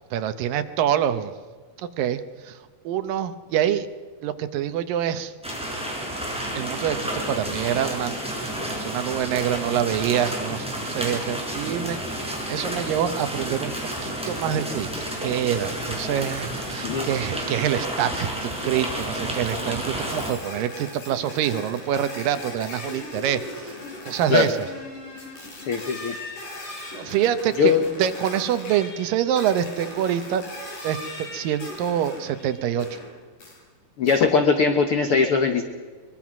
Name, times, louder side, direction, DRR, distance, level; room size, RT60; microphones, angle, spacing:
voice 1, 0.1-1.3 2.0-2.6 2.8-3.9 4.2-5.3 6.6-8.2 8.4-13.7 14.0-14.9 15.2-23.8 24.0-24.7 26.9-30.5 30.8-33.0, right 10 dB, 75° right, 11 dB, 2.4 m, -26 dB
sound 1, 5.4-20.3, equal, ahead, 5.0 m, -30 dB
sound 2, 20.0-33.1 33.4-33.6 34.1-34.2, left 2 dB, 60° left, 7.2 m, -39 dB
voice 2, 25.7-26.1 27.6-27.8 34.0-35.6, left 5 dB, 80° left, 7 dB, 1.2 m, -20 dB
23.5 x 22.0 x 6.0 m, 1.5 s
omnidirectional pair, 4.2 m